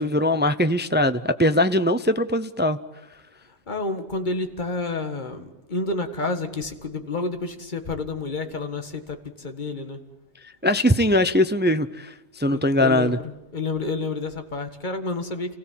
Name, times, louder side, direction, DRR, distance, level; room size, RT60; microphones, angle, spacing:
voice 1, 0.0-2.8 10.6-13.2, left 1 dB, 15° right, 11 dB, 0.3 m, -21 dB
voice 2, 3.4-10.0 12.5-15.6, left 3 dB, 35° left, 6 dB, 1.8 m, -30 dB
28.5 x 16.5 x 7.5 m, 1.1 s
omnidirectional pair, 1.4 m